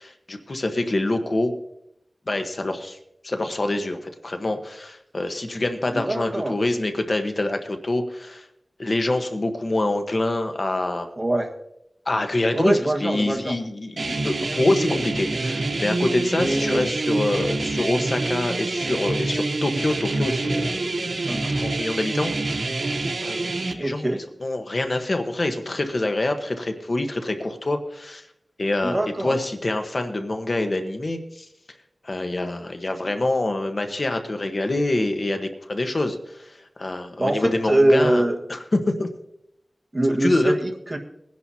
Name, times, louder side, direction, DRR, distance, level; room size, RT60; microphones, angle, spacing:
voice 1, 0.0-1.5 2.3-3.0 3.2-8.5 8.8-11.1 12.1-22.6 23.2-28.2 28.6-31.5 32.0-38.2 38.5-39.1 40.2-40.5, left 2 dB, 60° left, 6 dB, 1.2 m, -26 dB
voice 2, 5.9-6.6 11.2-11.5 12.5-13.5 16.4-16.8 21.3-21.6 23.8-24.2 28.8-29.3 37.2-38.4 39.9-41.0, right 1 dB, 30° right, 3 dB, 1.6 m, -23 dB
sound 1, 14.0-23.7, right 2 dB, 85° right, 0.9 m, -26 dB
21.0 x 10.5 x 2.9 m, 0.79 s
wide cardioid pair, 50°, 0 cm